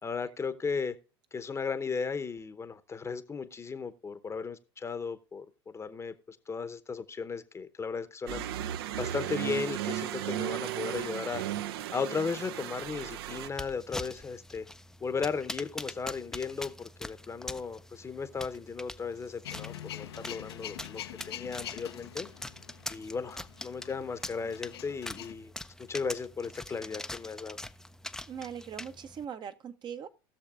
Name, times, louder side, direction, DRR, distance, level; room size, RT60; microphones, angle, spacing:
voice 1, 0.0-1.0 1.3-8.4 9.0-11.4 11.9-14.7 15.0-22.3 22.9-25.5 25.8-27.6, left 5 dB, 20° left, 0.8 m, -36 dB
sound 1, 8.3-13.5, right 12 dB, 75° right, 0.5 m, -35 dB
sound 2, 13.5-29.2, left 1 dB, 5° left, 0.4 m, -44 dB
Male speech man speaking / Vehicle / Engine starting, 19.4-25.3, left 12 dB, 80° left, 0.7 m, -44 dB
voice 2, 28.3-30.1, right 8 dB, 35° right, 0.7 m, -40 dB
19.5 x 6.5 x 2.4 m
hypercardioid pair, 90°, 13 cm